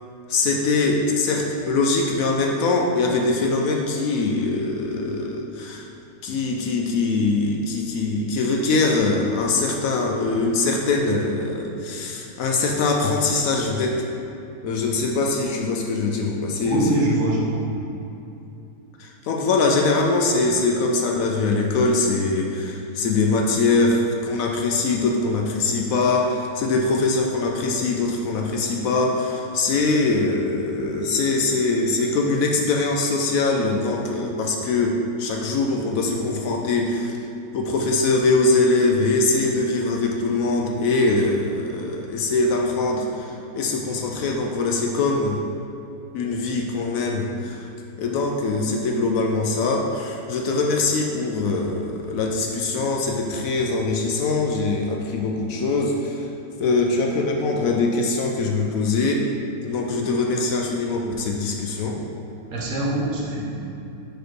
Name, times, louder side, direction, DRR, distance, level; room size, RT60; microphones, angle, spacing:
voice 1, 0.3-5.8 6.2-14.0 14.6-17.2 19.0-37.1 37.5-45.4 46.1-47.6 48.0-56.2 56.6-59.3 59.6-62.0, left 3 dB, 70° left, 1 dB, 0.9 m, -22 dB
voice 2, 16.6-17.6 62.5-63.5, right 1 dB, 55° right, -3 dB, 1.3 m, -23 dB
4.6 x 4.5 x 4.6 m, 2.8 s
omnidirectional pair, 1.8 m